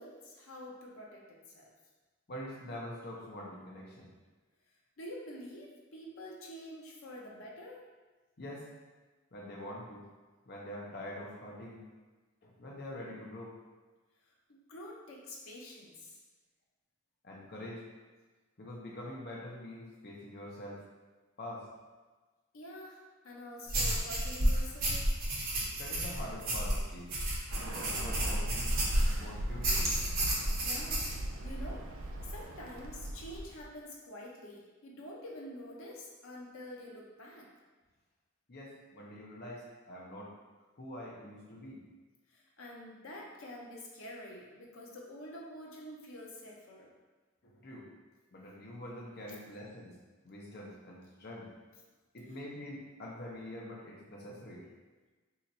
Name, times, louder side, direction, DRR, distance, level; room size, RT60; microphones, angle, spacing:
voice 1, 0.0-1.7 5.0-7.8 14.5-16.2 22.5-25.1 30.6-31.1 31.4-37.5 42.3-46.9 49.3-49.4, left 1 dB, 85° left, -2 dB, 0.7 m, -47 dB
voice 2, 2.3-4.1 8.4-8.7 9.3-10.0 10.5-11.8 12.4-13.6 17.2-17.9 18.6-20.8 21.4-21.7 25.8-27.1 27.7-28.8 29.1-29.9 38.5-40.3 40.8-41.8 47.4-47.9 48.3-49.9 50.2-51.5 52.1-54.6, left 1 dB, 50° left, -3 dB, 0.7 m, -45 dB
sound 1, 23.7-29.2 29.6-31.1, right 1 dB, 45° right, 0.9 m, -31 dB
Bird, 27.5-33.6, right 1 dB, 70° right, 0.4 m, -41 dB
2.9 x 2.5 x 4.0 m, 1.3 s
head